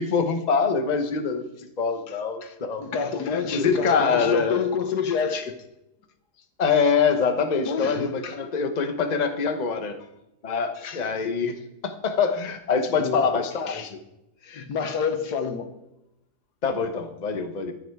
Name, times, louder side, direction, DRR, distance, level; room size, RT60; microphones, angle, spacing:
voice 1, 0.0-1.4 1.8-2.8 3.5-4.6 6.6-10.0 10.4-14.0 16.6-17.7, left 5 dB, 30° left, 1.0 m, -24 dB
voice 2, 2.1-5.6 7.6-8.4 10.8-11.0 12.9-13.3 13.7-13.9 14.4-15.8, left 6 dB, 80° left, 1.7 m, -29 dB
14.5 x 10.5 x 4.7 m
omnidirectional pair, 1.7 m